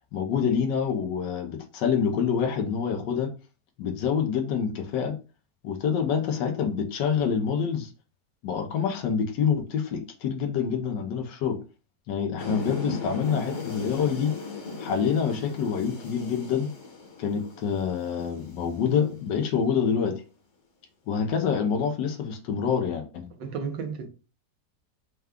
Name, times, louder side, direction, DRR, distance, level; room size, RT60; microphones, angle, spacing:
voice 1, 0.1-3.3 3.8-5.2 5.6-7.9 8.4-11.6 12.1-14.3 14.8-16.7 17.2-20.2 21.1-23.3, left 7 dB, 90° left, 1.4 m, -26 dB
sound 1, 12.4-19.3, left 4 dB, 50° left, 1.2 m, -37 dB
voice 2, 23.4-24.1, right 6 dB, 85° right, 1.5 m, -33 dB
4.6 x 2.3 x 3.6 m
omnidirectional pair, 1.9 m